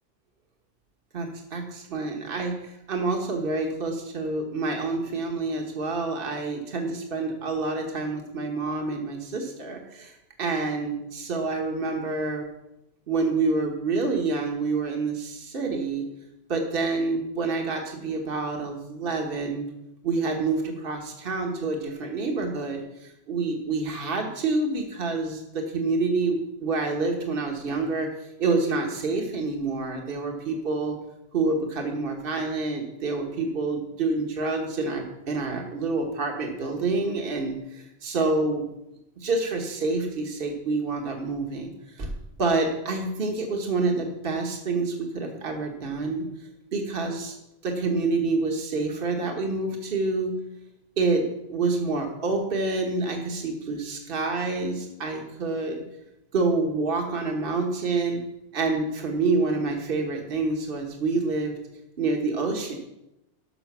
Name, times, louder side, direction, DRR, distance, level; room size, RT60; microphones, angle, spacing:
voice 1, 1.1-2.6 2.9-12.5 13.1-16.0 16.5-19.6 20.0-30.9 31.3-38.6 39.2-41.7 42.0-42.1 42.4-46.3 46.7-47.3 47.6-50.3 51.0-55.8 56.3-58.2 58.5-61.6 62.0-62.8, right 3 dB, 55° right, 2 dB, 1.5 m, -27 dB
12.0 x 6.2 x 6.1 m, 0.89 s
omnidirectional pair, 1.1 m